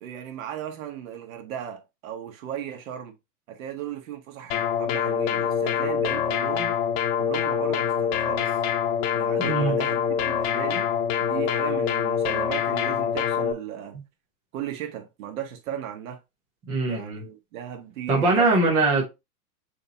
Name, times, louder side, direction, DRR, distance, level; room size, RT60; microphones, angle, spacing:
voice 1, 0.0-3.1 3.5-6.7 7.2-8.6 9.1-10.9 11.2-14.0 14.5-16.2 16.9-18.5, right 10 dB, 55° right, 1.5 m, -36 dB
sound 1, 4.5-13.5, left 8 dB, 40° left, 0.8 m, -25 dB
voice 2, 9.4-9.8 16.7-17.2 18.1-19.1, right 3 dB, 10° right, 0.4 m, -22 dB
6.4 x 2.9 x 2.9 m
hypercardioid pair, 135°, 49 cm